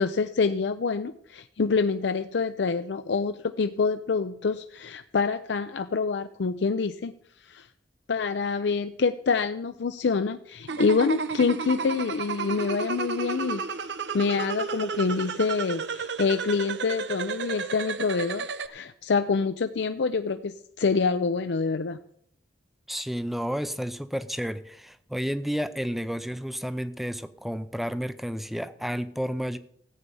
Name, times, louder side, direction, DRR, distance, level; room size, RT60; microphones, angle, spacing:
voice 1, 0.0-7.1 7.4-7.7 8.1-13.6 14.1-22.0, left 4 dB, 75° left, 9 dB, 0.5 m, -26 dB
sound 1, 10.7-18.7, right 5 dB, 70° right, 0.7 m, -32 dB
voice 2, 22.9-29.6, equal, ahead, 12 dB, 0.4 m, -31 dB
15.0 x 8.3 x 5.4 m, 0.69 s
head